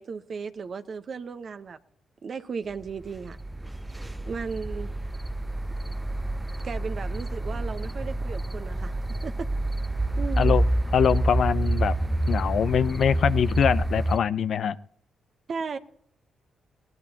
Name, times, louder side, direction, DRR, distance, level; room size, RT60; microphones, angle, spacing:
voice 1, 0.0-1.8 2.2-3.4 4.3-4.9 6.6-9.5 10.2-10.6 15.5-15.8, right 5 dB, 55° right, 1.0 m, -35 dB
sound 1, 2.9-14.2, right 1 dB, 15° right, 0.7 m, -28 dB
voice 2, 10.9-11.9 12.3-14.8, left 8 dB, 65° left, 0.5 m, -23 dB
20.0 x 18.0 x 2.9 m
hypercardioid pair, 50°, 0 cm